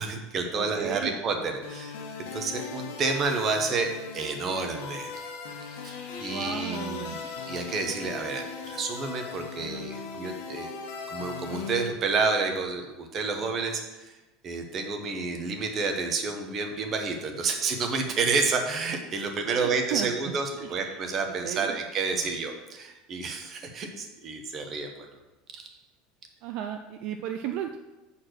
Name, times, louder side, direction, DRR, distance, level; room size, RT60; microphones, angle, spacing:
voice 1, 0.0-1.9 2.3-5.1 5.8-10.7 11.1-14.1 14.4-24.9 25.5-25.8, right 4 dB, 25° right, 4 dB, 0.9 m, -30 dB
voice 2, 0.5-1.1 6.2-7.2 17.4-17.5 19.4-21.0 21.4-21.8 26.4-27.8, right 10 dB, 50° right, 6 dB, 0.4 m, -35 dB
sound 1, 1.6-11.8, left 5 dB, 80° left, 1.4 m, -39 dB
7.7 x 4.3 x 6.4 m, 1.1 s
cardioid pair, 170°, 0 cm